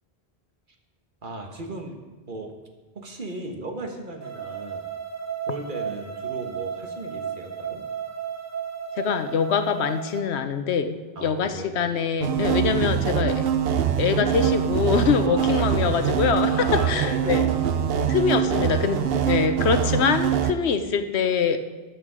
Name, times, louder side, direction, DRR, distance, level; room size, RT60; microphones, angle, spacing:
voice 1, 1.2-2.0 2.3-2.5 2.9-4.9 5.5-7.8 11.1-11.7 15.2-16.2 16.5-18.5, right 2 dB, 50° right, 4 dB, 1.5 m, -36 dB
sound 1, 4.2-10.2, right 7 dB, 15° right, 1.0 m, -33 dB
voice 2, 9.0-13.4 14.0-17.4 18.1-21.6, left 6 dB, 90° left, 9 dB, 1.1 m, -24 dB
sound 2, 12.2-20.5, right 9 dB, 65° right, 0.9 m, -23 dB
13.0 x 9.1 x 5.0 m, 1.2 s
omnidirectional pair, 1.1 m